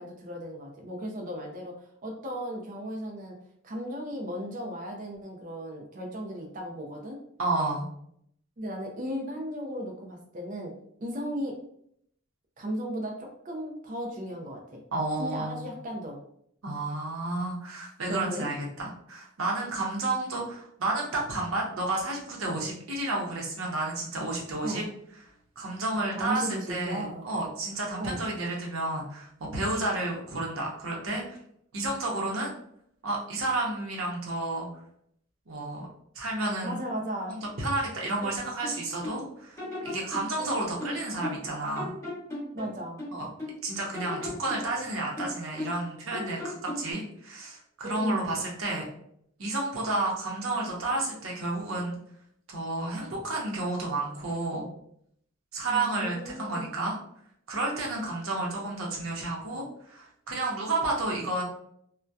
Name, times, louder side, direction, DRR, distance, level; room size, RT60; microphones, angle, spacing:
voice 1, 0.0-1.7 2.0-3.4 3.6-7.2 8.6-10.7 11.0-11.5 12.6-14.8 15.2-16.2 18.1-18.5 24.6-24.9 26.1-27.2 28.0-28.2 36.6-37.4 42.5-43.1 47.8-48.3 55.7-56.7, equal, 40° right, 1 dB, 0.4 m, -35 dB
voice 2, 7.4-7.9 14.9-15.7 16.6-24.8 25.6-31.4 31.7-32.5 33.0-34.7 35.5-35.9 36.1-36.8 37.3-41.9 43.1-43.3 43.6-48.8 49.4-52.0 52.5-54.7 55.5-57.0 57.5-61.4, right 2 dB, 85° right, -2 dB, 0.7 m, -31 dB
sound 1, 38.2-39.2 39.6-41.5 41.7-43.6 43.9-45.8 46.1-46.9, left 2 dB, 15° left, 0.9 m, -37 dB
2.6 x 2.1 x 2.2 m, 0.70 s
head